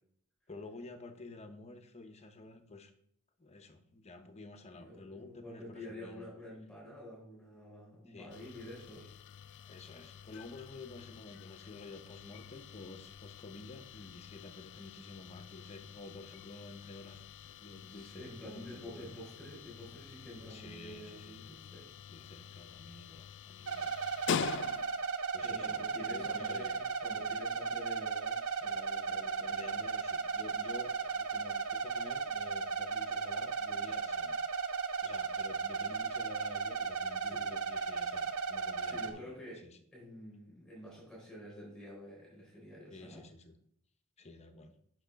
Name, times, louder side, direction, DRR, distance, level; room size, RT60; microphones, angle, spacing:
voice 1, 0.5-2.9 3.4-6.3 8.1-8.3 9.7-19.1 20.5-21.5 22.1-24.1 25.3-25.8 26.1-26.8 29.5-34.4 35.0-39.3 39.6-39.8 42.9-43.5 44.2-44.7, left 3 dB, 30° left, 7 dB, 0.8 m, -50 dB
voice 2, 4.7-9.1 17.9-21.9 25.4-29.7 37.2-37.4 38.8-39.6 39.9-43.2, left 1 dB, 5° left, -4 dB, 4.0 m, -49 dB
sound 1, 8.3-25.2, left 8 dB, 55° left, 0.3 m, -45 dB
sound 2, 23.7-39.1, right 5 dB, 80° right, 0.7 m, -36 dB
6.9 x 6.2 x 5.1 m, 0.67 s
head